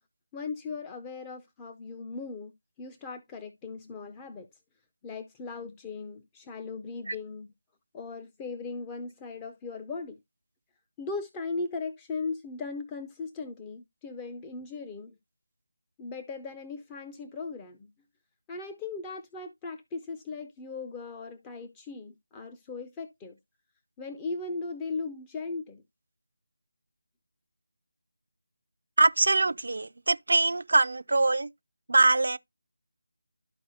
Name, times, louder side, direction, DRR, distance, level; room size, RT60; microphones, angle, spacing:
voice 1, 0.3-2.5 2.8-4.5 5.0-7.5 7.9-10.2 11.0-15.2 16.0-17.9 18.5-23.4 24.0-25.8, left 4 dB, 15° left, 0.5 m, -38 dB
voice 2, 29.0-31.5 31.9-32.4, right 3 dB, 65° right, 0.4 m, -23 dB
12.5 x 4.5 x 2.7 m
figure-of-eight pair, 165°, 0 cm